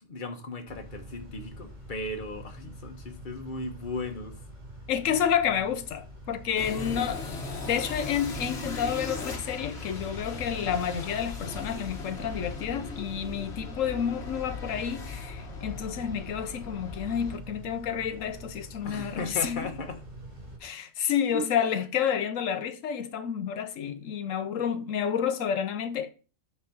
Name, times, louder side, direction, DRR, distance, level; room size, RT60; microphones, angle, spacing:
voice 1, 0.1-4.4 18.8-20.0 21.3-21.7, left 2 dB, 40° left, 1.4 m, -36 dB
Car / Idling / Accelerating revving vroom, 0.7-20.6, equal, 35° right, 3.1 m, -46 dB
voice 2, 4.9-7.3 7.7-19.6 20.6-26.1, left 8 dB, 90° left, 1.1 m, -30 dB
sound 1, 6.6-17.4, left 4 dB, 55° left, 1.5 m, -38 dB
9.2 x 4.7 x 4.6 m
omnidirectional pair, 1.3 m